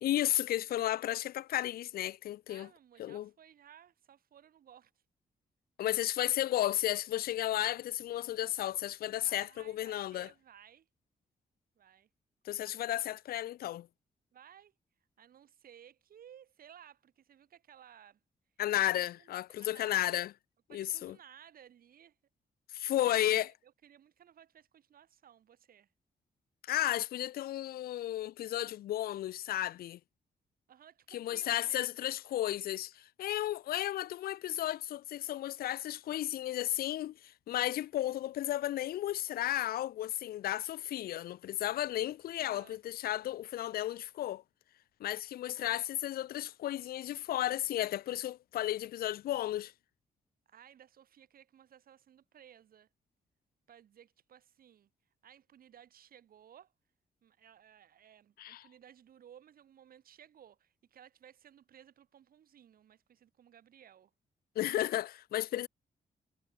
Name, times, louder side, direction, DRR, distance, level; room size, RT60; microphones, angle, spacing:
voice 1, 0.0-2.7 3.0-3.3 5.8-10.3 12.5-13.9 18.6-20.3 20.7-21.2 22.7-23.5 26.7-30.0 31.1-44.4 45.0-49.7 58.4-58.7 64.6-65.7, left 13 dB, 85° left, 0.4 m, -33 dB
voice 2, 0.7-1.2 2.5-5.0 5.8-5.9 9.2-10.9 11.8-12.1 14.3-14.7 15.2-18.2 19.2-20.1 20.7-22.2 23.1-25.9 30.7-31.9 42.4-42.8 45.5-45.8 50.5-52.9 53.7-54.9 55.2-56.7 57.2-64.1, right 9 dB, 75° right, 4.4 m, -58 dB
wide cardioid pair, 135°, 15 cm